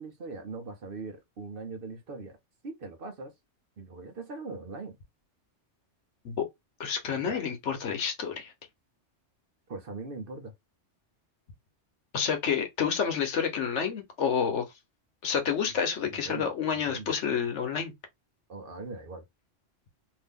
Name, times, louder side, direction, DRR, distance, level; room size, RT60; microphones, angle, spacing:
voice 1, 0.0-2.4 2.6-3.3 3.8-5.0 7.3-7.4 9.7-10.5 16.2-17.2 18.5-19.3, right 3 dB, 55° right, 0.8 m, -41 dB
voice 2, 6.8-8.5 12.1-14.7 15.2-17.9, left 7 dB, 75° left, 1.1 m, -29 dB
2.7 x 2.7 x 3.5 m
omnidirectional pair, 1.2 m